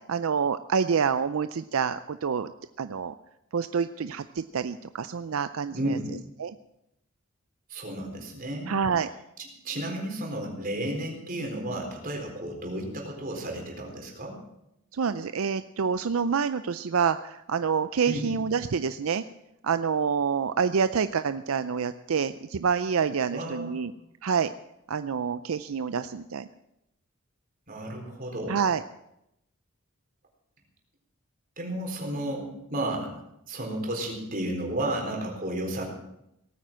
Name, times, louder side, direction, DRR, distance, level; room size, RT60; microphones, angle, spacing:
voice 1, 0.1-2.5 2.8-3.2 3.5-6.0 6.4-6.6 8.7-9.1 14.9-19.2 19.6-23.9 24.2-24.5 24.9-26.5 28.5-28.8, right 6 dB, 80° right, 12 dB, 0.5 m, -27 dB
voice 2, 5.7-6.1 7.7-8.7 9.4-14.3 18.1-18.3 23.3-23.7 27.7-28.6 31.6-33.1 33.5-35.8, right 1 dB, 40° right, 1 dB, 4.1 m, -33 dB
18.0 x 9.3 x 7.5 m, 0.83 s
head